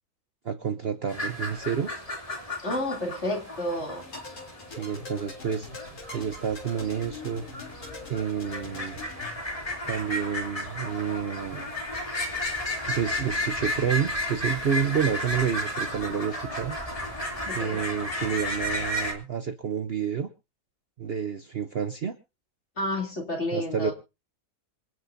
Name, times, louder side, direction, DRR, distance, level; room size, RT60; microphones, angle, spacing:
voice 1, 0.4-2.0 4.7-5.7 6.1-7.4 8.1-9.0 9.9-11.7 12.9-16.8 17.5-20.3 21.0-22.2 23.5-23.9, right 7 dB, 50° right, 9 dB, 0.9 m, -29 dB
sound 1, 1.1-19.1, left 1 dB, 20° left, 3.0 m, -33 dB
voice 2, 2.6-4.1 17.5-17.8 22.8-23.9, left 1 dB, 45° left, 1 dB, 3.4 m, -30 dB
sound 2, 4.0-9.3, left 3 dB, 65° left, 3.7 m, -43 dB
26.5 x 9.5 x 2.7 m, 0.29 s
omnidirectional pair, 1.6 m